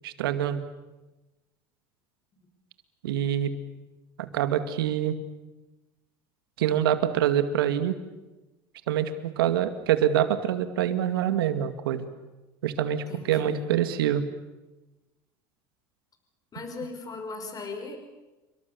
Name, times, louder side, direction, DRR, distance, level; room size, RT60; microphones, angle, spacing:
voice 1, 0.0-0.6 3.0-3.5 4.2-5.2 6.6-8.0 8.9-12.1 12.6-14.2, right 10 dB, 90° right, 9 dB, 2.1 m, -25 dB
voice 2, 13.1-13.8 16.5-18.0, left 3 dB, 30° left, 6 dB, 5.9 m, -38 dB
29.0 x 23.5 x 7.1 m, 1.1 s
supercardioid pair, 95°, 12 cm